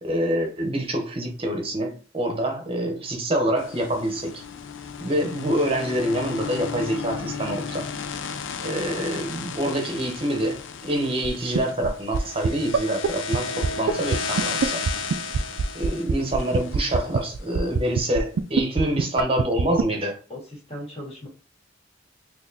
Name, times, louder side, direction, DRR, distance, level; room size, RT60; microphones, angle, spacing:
voice 1, 0.0-4.4 5.0-7.9 8.6-14.9 15.7-20.2, right 1 dB, 30° right, 0.9 m, -26 dB
sound 1, 3.6-17.8, left 5 dB, 80° left, 0.5 m, -34 dB
sound 2, 11.2-11.3 11.5-11.9 12.1-12.2 12.4-12.5 12.7-12.8 13.0-13.1 13.3-13.4 13.6-19.8, right 6 dB, 75° right, 0.4 m, -21 dB
voice 2, 20.3-21.3, left 1 dB, 35° left, 2.0 m, -38 dB
4.0 x 2.9 x 2.8 m
head